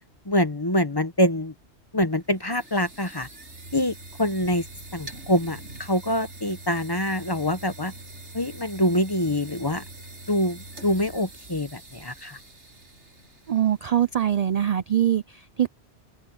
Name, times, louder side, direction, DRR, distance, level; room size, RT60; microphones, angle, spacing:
voice 1, 0.3-1.5 1.9-3.3 3.7-4.6 4.9-7.9 8.3-9.8 10.3-12.4, left 1 dB, 20° left, 1.1 m, -25 dB
sound 1, 2.0-14.8, right 2 dB, 90° right, 6.8 m, -44 dB
voice 2, 13.5-15.7, right 10 dB, 55° right, 0.4 m, -23 dB
omnidirectional pair, 1.2 m